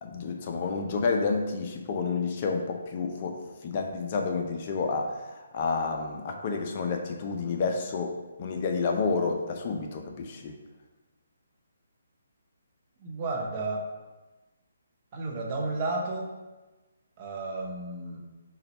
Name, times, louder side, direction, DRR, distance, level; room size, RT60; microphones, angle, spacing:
voice 1, 0.0-10.6, left 4 dB, 40° left, 3 dB, 0.4 m, -30 dB
voice 2, 13.0-13.8 15.1-16.3 17.2-18.2, right 3 dB, 35° right, 0 dB, 0.7 m, -32 dB
4.0 x 2.2 x 4.0 m, 1.2 s
figure-of-eight pair, 140°, 0 cm